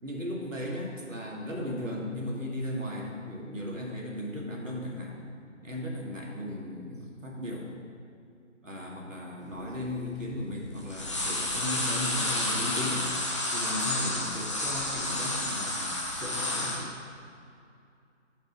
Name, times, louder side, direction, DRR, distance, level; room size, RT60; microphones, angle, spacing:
voice 1, 0.0-5.2 5.6-7.7 8.6-13.0 13.5-16.9, left 1 dB, 80° right, -2 dB, 2.1 m, -36 dB
sound 1, 9.5-9.6 9.8-10.5 10.8-16.8, left 1 dB, 25° left, 0.8 m, -31 dB
9.3 x 5.5 x 5.0 m, 2.4 s
figure-of-eight pair, 160°, 38 cm